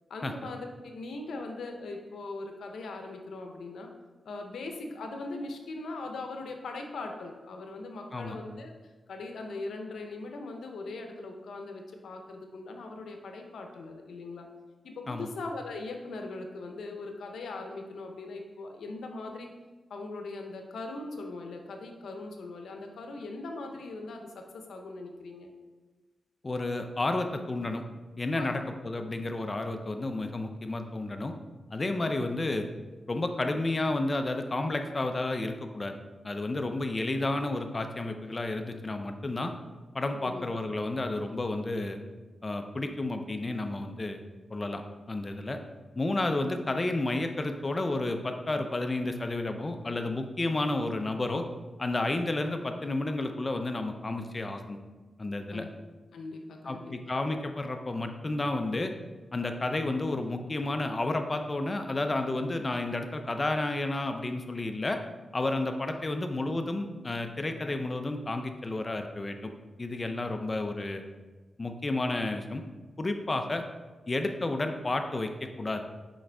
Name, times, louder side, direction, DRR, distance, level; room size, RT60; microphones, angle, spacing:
voice 1, 0.1-3.9 4.2-8.7 9.1-14.5 14.8-19.5 19.9-25.5 28.3-28.7 40.1-40.5 55.5-55.7 56.1-56.9, left 3 dB, 90° left, 3 dB, 0.8 m, -40 dB
voice 2, 26.4-27.8 28.2-31.3 31.7-32.7 33.1-36.0 36.2-39.5 39.9-42.0 42.4-44.2 44.5-44.8 45.1-45.6 46.0-51.5 51.8-54.8 55.2-55.6 56.6-58.9 59.3-65.0 65.3-69.5 69.8-71.0 71.6-72.6 73.0-73.6 74.1-75.3 75.6-75.8, left 2 dB, 35° left, 6 dB, 0.6 m, -31 dB
6.2 x 5.2 x 3.4 m, 1.3 s
cardioid pair, 70°, 0 cm